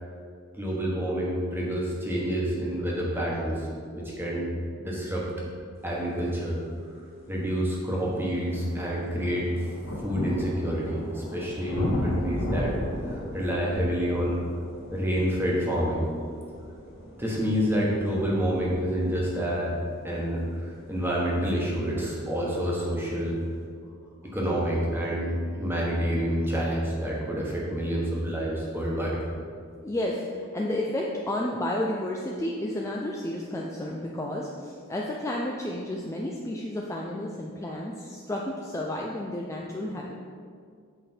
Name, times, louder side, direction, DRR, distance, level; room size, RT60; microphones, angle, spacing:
voice 1, 0.6-3.7 3.9-4.5 4.8-5.3 5.8-6.6 7.3-9.5 10.0-12.8 13.1-14.4 14.9-16.1 17.2-19.7 20.0-23.4 24.3-29.2, equal, 10° right, -4 dB, 1.3 m, -28 dB
sound 1, 6.9-7.0 7.6-22.3 23.2-23.3, left 1 dB, 70° left, 1.8 m, -36 dB
voice 2, 29.8-40.1, left 1 dB, 15° left, -2 dB, 0.4 m, -31 dB
7.7 x 5.0 x 4.4 m, 2.2 s
head